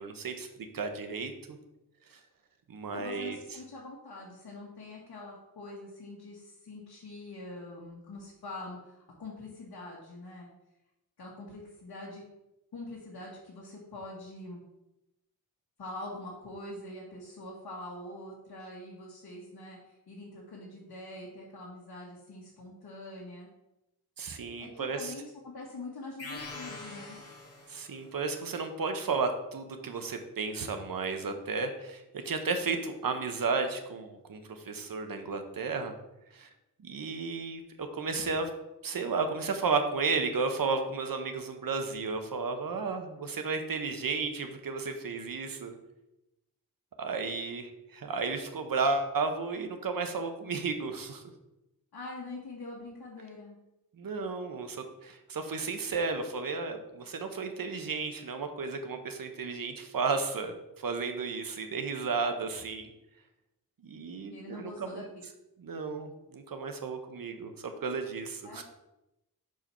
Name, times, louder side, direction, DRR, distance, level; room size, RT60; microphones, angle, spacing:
voice 1, 0.0-1.6 2.1-2.2 2.7-3.4 24.2-25.1 27.7-35.9 36.3-36.5 36.8-38.5 38.8-45.7 47.0-51.2 53.9-62.9 63.8-65.0 65.6-68.6, right 4 dB, 60° right, 6 dB, 0.9 m, -33 dB
voice 2, 2.8-10.5 11.2-12.2 12.7-14.6 15.8-23.5 24.6-27.2 51.9-53.6 64.2-65.0 68.4-68.6, left 2 dB, 75° left, -5 dB, 1.4 m, -44 dB
sound 1, 26.2-28.1, left 3 dB, 40° left, 1.7 m, -44 dB
4.7 x 4.5 x 5.5 m, 0.93 s
wide cardioid pair, 125°, 38 cm